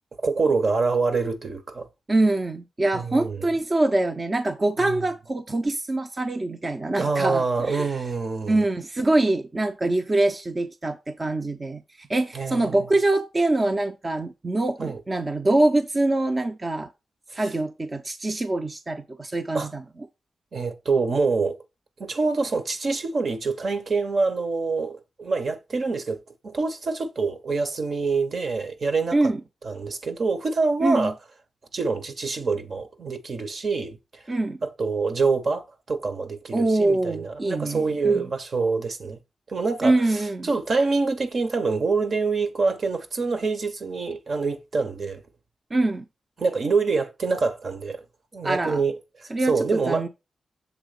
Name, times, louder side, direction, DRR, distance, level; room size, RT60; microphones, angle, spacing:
voice 1, 0.2-1.9 2.9-3.5 4.8-5.0 7.0-8.7 12.3-12.9 14.8-15.0 17.4-17.5 19.5-19.7 20.5-21.6 22.0-29.2 29.6-31.1 31.7-34.2 34.6-39.2 39.5-45.2 46.4-48.0 48.3-49.0 49.5-50.1, right 4 dB, 60° right, 1.2 m, -26 dB
voice 2, 2.1-7.9 8.5-16.9 17.3-19.8 29.1-29.4 30.8-31.1 34.3-34.6 36.5-38.3 39.8-40.5 45.7-46.0 48.4-48.8 49.3-50.1, right 2 dB, 35° right, 0.7 m, -24 dB
7.2 x 3.5 x 5.1 m
cardioid pair, 65°, 0 cm